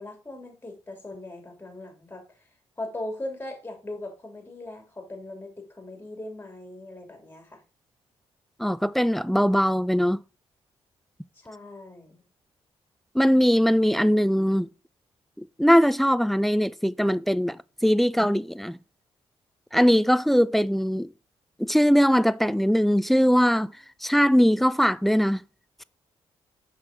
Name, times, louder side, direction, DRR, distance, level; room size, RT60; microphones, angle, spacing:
voice 1, 0.0-2.3 2.8-7.6 11.3-12.2, left 1 dB, 15° left, 3.0 m, -39 dB
voice 2, 8.6-10.2 13.1-14.7 15.6-17.6 17.8-18.8 19.7-21.1 21.6-23.7 24.0-25.4, equal, ahead, 0.4 m, -21 dB
6.1 x 5.7 x 3.7 m
cardioid pair, 65°, 11 cm